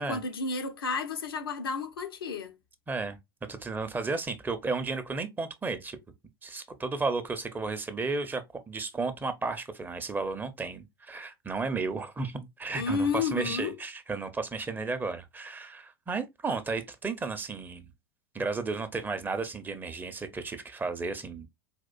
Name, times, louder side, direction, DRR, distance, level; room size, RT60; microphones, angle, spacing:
voice 1, 0.0-2.6 12.7-13.7, left 4 dB, 80° left, 0.6 m, -31 dB
voice 2, 2.9-3.2 3.5-6.0 6.4-17.9 18.3-21.5, right 3 dB, 15° right, 0.5 m, -33 dB
4.2 x 2.4 x 2.2 m
figure-of-eight pair, 85°, 12 cm